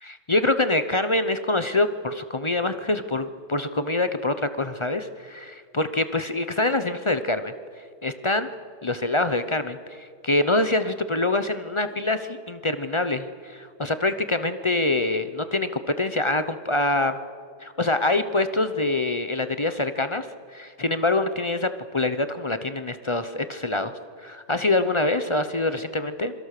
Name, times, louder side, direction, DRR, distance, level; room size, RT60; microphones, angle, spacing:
voice 1, 0.0-7.5 8.0-8.5 8.8-17.2 17.6-20.3 20.5-23.9 24.2-26.3, left 2 dB, 35° left, 10 dB, 0.4 m, -25 dB
27.0 x 22.5 x 6.7 m, 2.1 s
omnidirectional pair, 1.9 m